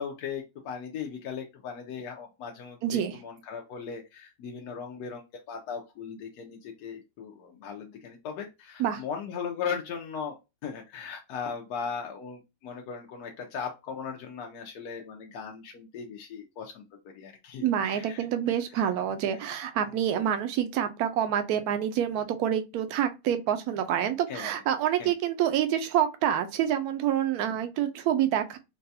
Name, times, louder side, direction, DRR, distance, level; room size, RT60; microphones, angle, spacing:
voice 1, 0.0-5.2 5.5-10.4 10.6-18.2 18.8-18.9 20.1-20.3 24.3-24.5 25.0-25.1, left 6 dB, 80° left, 1.1 m, -38 dB
voice 2, 2.8-3.2 8.8-9.0 17.6-28.6, right 10 dB, 75° right, 1.1 m, -27 dB
4.0 x 2.2 x 2.6 m
omnidirectional pair, 1.7 m